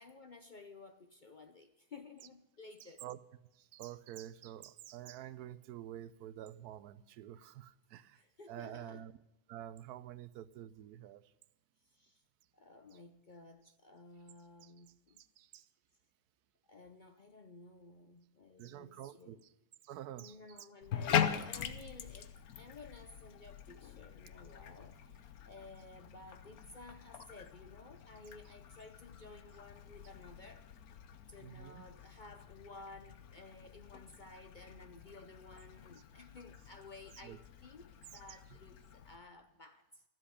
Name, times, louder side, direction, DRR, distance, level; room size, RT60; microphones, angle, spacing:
voice 1, 0.0-3.0 8.1-9.1 11.8-12.2 12.5-15.2 16.6-19.4 20.1-30.7 31.3-37.9 38.1-40.0, left 3 dB, 45° left, 8 dB, 0.7 m, -55 dB
voice 2, 2.8-3.2 3.5-8.2 8.5-9.1 9.5-11.3 14.6-14.7 15.2-15.7 18.6-19.4 19.8-20.4 31.4-31.8 37.2-37.4, right 12 dB, 85° right, 17 dB, 1.2 m, -48 dB
Bathtub (filling or washing), 20.8-39.2, left 8 dB, 75° left, 1.3 m, -42 dB
14.0 x 7.8 x 9.9 m, 0.91 s
omnidirectional pair, 1.6 m